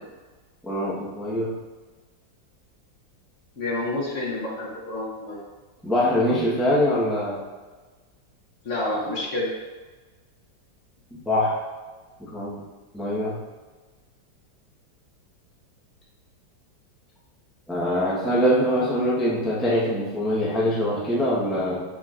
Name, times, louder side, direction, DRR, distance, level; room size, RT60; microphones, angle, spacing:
voice 1, 0.6-1.5 5.8-7.4 11.2-11.6 12.2-12.6 12.9-13.4 17.7-21.8, equal, ahead, -6 dB, 0.8 m, -23 dB
voice 2, 3.6-5.4 8.6-9.5, left 2 dB, 45° left, -4 dB, 1.3 m, -28 dB
6.5 x 6.2 x 2.5 m, 1.3 s
omnidirectional pair, 2.0 m